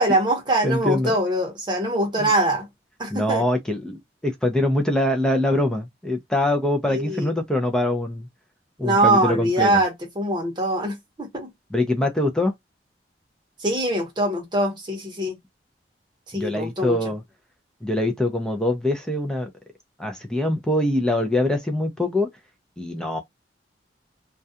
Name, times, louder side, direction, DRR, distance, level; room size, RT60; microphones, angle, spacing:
voice 1, 0.0-2.7 3.0-3.4 6.9-7.3 8.8-11.5 13.6-15.4 16.3-17.0, right 1 dB, 25° right, 0.8 m, -23 dB
voice 2, 0.6-1.1 2.2-2.3 3.1-8.3 8.8-9.7 11.7-12.5 16.3-17.2 17.8-19.5 20.0-22.3 22.8-23.2, left 1 dB, 5° left, 0.4 m, -23 dB
2.3 x 2.3 x 2.6 m
head